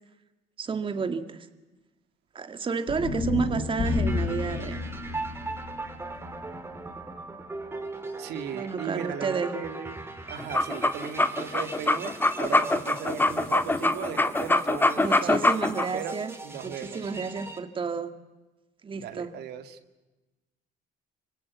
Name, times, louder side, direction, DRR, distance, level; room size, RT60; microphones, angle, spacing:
voice 1, 0.6-1.5 2.3-4.8 8.5-9.7 15.0-16.4 16.6-18.1 18.8-19.3, right 5 dB, 30° right, 9 dB, 1.9 m, -31 dB
sound 1, 2.9-7.1, left 3 dB, 45° left, 5.3 m, -31 dB
sound 2, 3.9-17.6, right 2 dB, 15° right, 3.2 m, -40 dB
voice 2, 8.2-9.9 10.3-12.1 12.4-15.3 15.9-16.2 16.4-17.1 18.9-19.8, right 8 dB, 75° right, 8 dB, 2.1 m, -37 dB
sound 3, 10.4-15.9, left 2 dB, 10° left, 1.5 m, -23 dB
27.0 x 25.5 x 8.3 m, 1.1 s
cardioid pair, 110°, 17 cm